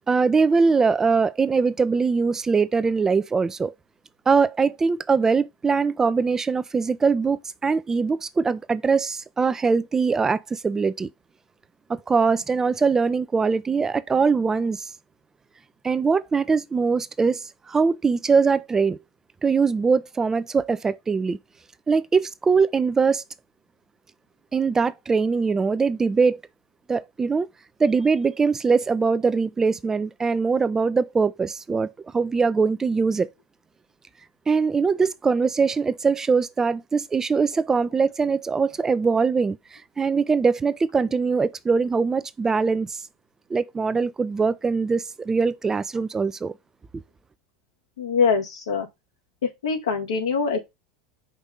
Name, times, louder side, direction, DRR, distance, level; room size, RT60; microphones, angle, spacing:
voice 1, 0.1-3.7 4.3-11.1 11.9-14.9 15.8-19.0 19.4-21.4 21.9-23.2 24.5-26.4 26.9-27.5 27.8-33.3 34.5-43.0 43.5-46.5, right 5 dB, 20° right, 0.5 m, -22 dB
voice 2, 48.0-48.9 49.4-50.6, left 5 dB, 80° left, 1.9 m, -23 dB
5.2 x 3.5 x 5.5 m
hypercardioid pair, 85°, 3 cm